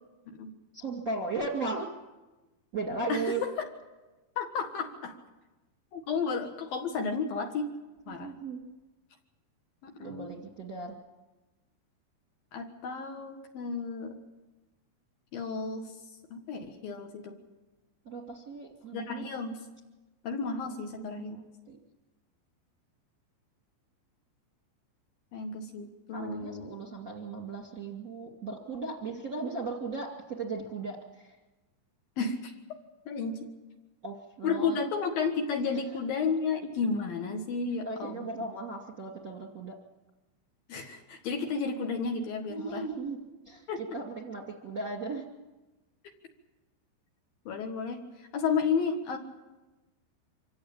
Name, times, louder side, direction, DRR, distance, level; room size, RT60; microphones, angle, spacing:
voice 1, 0.7-1.9 2.7-3.4 8.1-8.7 10.0-10.9 18.0-19.3 20.6-21.8 26.1-31.3 34.0-34.8 35.7-35.9 37.8-39.7 42.5-43.2 43.4-45.2, right 3 dB, 35° right, 1 dB, 1.5 m, -37 dB
voice 2, 3.1-3.5 4.4-5.1 5.9-7.7 8.1-8.3 9.8-10.3 12.5-14.2 15.3-16.0 16.3-17.4 18.9-19.6 20.2-21.4 25.3-26.8 32.2-32.5 33.1-33.5 34.4-38.5 40.7-42.8 43.7-43.8 47.5-49.2, left 5 dB, 60° left, 4 dB, 2.9 m, -32 dB
25.5 x 16.5 x 8.7 m, 1.1 s
omnidirectional pair, 5.4 m